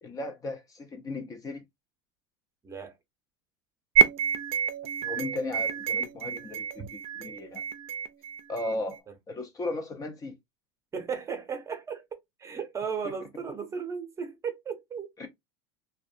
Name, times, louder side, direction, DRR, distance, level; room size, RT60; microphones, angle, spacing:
voice 1, 0.0-1.6 5.0-7.6 8.5-10.4 15.2-15.3, left 2 dB, 25° left, 0.5 m, -36 dB
voice 2, 2.6-2.9 6.8-6.9 10.9-15.1, right 6 dB, 25° right, 0.7 m, -35 dB
sound 1, 4.0-9.0, right 8 dB, 50° right, 0.4 m, -28 dB
2.5 x 2.2 x 2.5 m
supercardioid pair, 105°, 13 cm